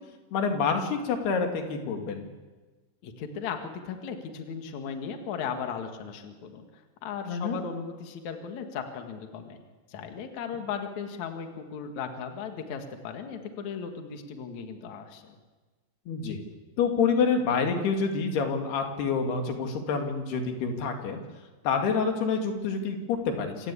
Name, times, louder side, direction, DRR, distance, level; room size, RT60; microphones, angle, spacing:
voice 1, 0.3-2.4 7.3-7.6 16.1-16.4 16.8-21.2 21.6-23.7, left 5 dB, 80° left, 4 dB, 4.2 m, -27 dB
voice 2, 3.0-9.6 9.9-15.4, left 6 dB, 55° left, 5 dB, 2.8 m, -37 dB
27.5 x 17.5 x 8.4 m, 1.3 s
omnidirectional pair, 4.6 m